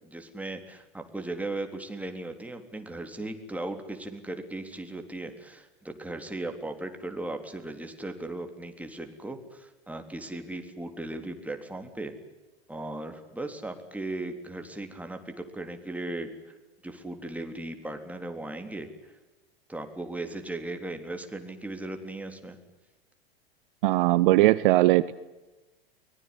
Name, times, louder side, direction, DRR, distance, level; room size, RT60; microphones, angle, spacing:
voice 1, 0.0-12.1 12.7-16.5 16.8-19.1 19.7-22.6, right 2 dB, 5° right, 5 dB, 3.6 m, -37 dB
voice 2, 23.8-25.1, right 18 dB, 55° right, 17 dB, 0.9 m, -20 dB
24.0 x 20.5 x 9.9 m, 1.1 s
hypercardioid pair, 90°, 30 cm